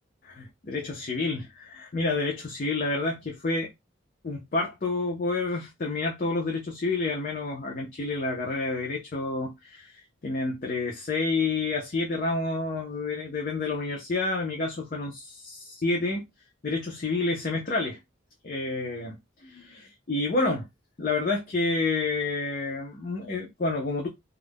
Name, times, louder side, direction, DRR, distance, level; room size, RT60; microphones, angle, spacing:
voice 1, 0.2-3.7 4.2-16.3 16.6-18.0 18.4-20.7 21.0-24.1, left 3 dB, 45° left, 0.5 m, -29 dB
2.3 x 2.1 x 3.3 m
head